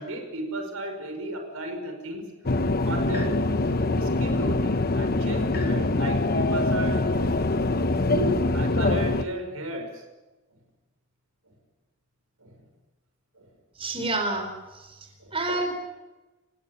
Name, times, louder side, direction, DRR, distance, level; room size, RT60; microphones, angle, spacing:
voice 1, 0.0-3.4 4.0-7.1 8.0-10.0 10.5-10.6 12.4-12.6 13.4-13.5 15.2-15.4, right 1 dB, 90° right, 5 dB, 5.6 m, -34 dB
sound 1, 2.5-9.2, left 2 dB, 45° left, 1.0 m, -24 dB
voice 2, 13.8-14.5 14.7-14.8 15.3-15.7, right 2 dB, 25° right, 4 dB, 4.4 m, -27 dB
29.0 x 18.0 x 7.2 m, 1.1 s
head